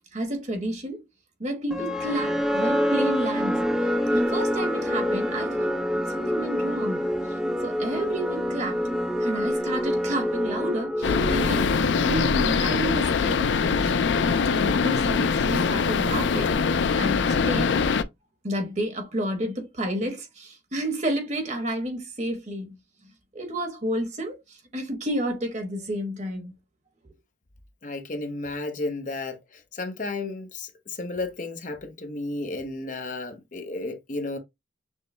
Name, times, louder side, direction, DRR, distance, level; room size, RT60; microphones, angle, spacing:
voice 1, 0.1-1.0 1.4-3.7 4.1-5.7 6.1-7.1 7.6-8.9 9.2-14.0 14.5-17.7 18.4-22.8 23.3-26.5 27.0-27.1, right 1 dB, 40° right, 1.2 m, -31 dB
sound 1, 1.7-11.9, equal, 5° right, 0.6 m, -26 dB
sound 2, 11.0-18.0, left 5 dB, 75° left, 0.4 m, -23 dB
voice 2, 27.8-34.4, left 2 dB, 45° left, 0.7 m, -33 dB
6.2 x 2.1 x 3.2 m
head